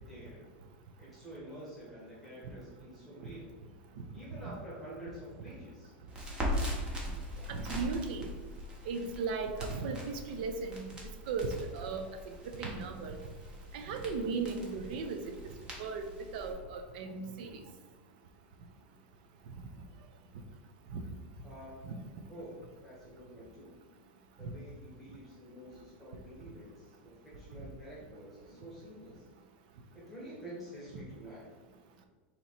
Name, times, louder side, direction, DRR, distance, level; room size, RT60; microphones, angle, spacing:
voice 1, 0.1-0.4 1.0-3.4 4.1-5.9 21.4-21.7 22.3-23.7 24.4-26.8 27.0-29.2 29.9-31.5, equal, ahead, -8 dB, 1.4 m, -48 dB
Crackle, 6.1-16.5, equal, 15° right, 0.8 m, -41 dB
voice 2, 7.5-8.3 8.9-10.9 11.3-11.5 11.7-12.0 12.6-13.2 13.7-15.2 15.8-16.1 16.3-17.6 20.9-21.0 21.8-21.9, right 4 dB, 50° right, 6 dB, 0.5 m, -36 dB
4.6 x 2.9 x 4.1 m, 1.3 s
supercardioid pair, 170°, 6 cm